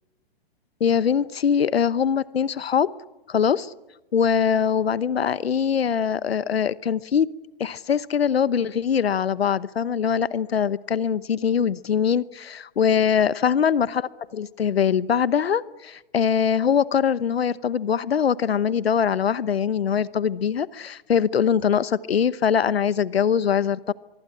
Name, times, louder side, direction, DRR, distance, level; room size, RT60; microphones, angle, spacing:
voice 1, 0.8-2.9 3.3-3.7 4.1-7.3 7.6-23.9, left 7 dB, 80° left, 18 dB, 1.0 m, -22 dB
24.0 x 23.5 x 10.0 m, 1.0 s
hypercardioid pair, 130°, 30 cm